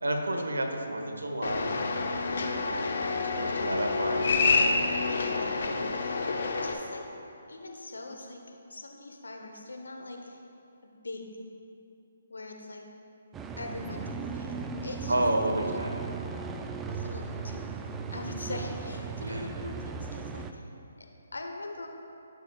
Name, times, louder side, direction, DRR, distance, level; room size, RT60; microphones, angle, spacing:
voice 1, 0.0-4.7 13.8-14.1 15.1-16.0 19.2-19.4, right 1 dB, 90° right, 3 dB, 1.1 m, -32 dB
sound 1, 1.4-6.7, left 4 dB, 60° left, 0.8 m, -28 dB
voice 2, 2.4-3.1 5.1-6.2 6.6-7.0 7.5-8.4 8.7-10.4 11.0-11.3 12.3-12.8 13.6-15.2 15.5-15.9 16.9-17.6 18.1-20.7 21.3-21.9, left 2 dB, 85° left, 3 dB, 1.0 m, -41 dB
sound 2, 13.3-20.5, right 5 dB, 15° right, 0.3 m, -37 dB
14.0 x 6.0 x 2.4 m, 2.8 s
figure-of-eight pair, 145°, 0 cm